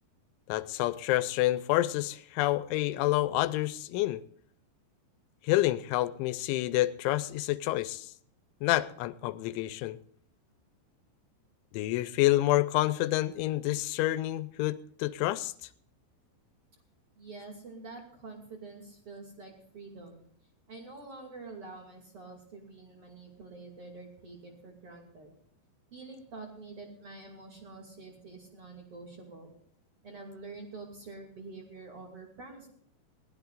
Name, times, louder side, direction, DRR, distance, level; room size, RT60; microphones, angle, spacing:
voice 1, 0.5-4.2 5.4-8.1 8.6-10.0 11.7-15.5, left 16 dB, 85° left, 3.1 m, -28 dB
voice 2, 17.1-20.2 20.7-25.3 25.9-29.5 30.0-32.7, right 3 dB, 35° right, 2.8 m, -47 dB
21.5 x 16.0 x 2.5 m
omnidirectional pair, 5.3 m